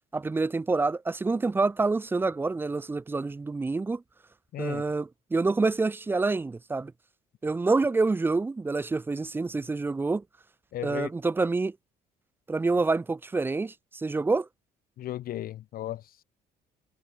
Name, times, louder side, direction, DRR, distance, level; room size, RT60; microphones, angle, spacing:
voice 1, 0.1-4.0 4.6-6.9 7.4-10.2 10.8-11.7 12.5-14.5, right 3 dB, 15° right, 0.3 m, -27 dB
voice 2, 4.5-4.8 10.7-11.1 15.0-16.2, left 13 dB, 60° left, 0.9 m, -35 dB
cardioid pair, 110°, 17 cm